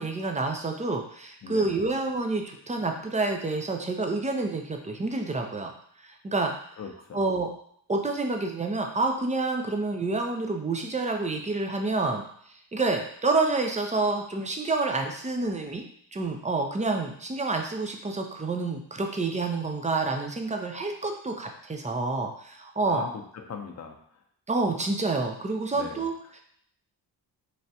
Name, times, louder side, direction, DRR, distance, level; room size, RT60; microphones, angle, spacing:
voice 1, 0.0-5.7 6.0-6.5 7.1-7.5 7.9-12.2 12.7-15.9 16.1-23.1 24.5-26.4, right 3 dB, 15° right, 3 dB, 0.5 m, -28 dB
voice 2, 1.4-1.8 6.8-7.2 22.8-24.0 25.7-26.0, left 6 dB, 35° left, 3 dB, 0.6 m, -39 dB
3.2 x 2.4 x 2.7 m, 0.66 s
cardioid pair, 60°, 45 cm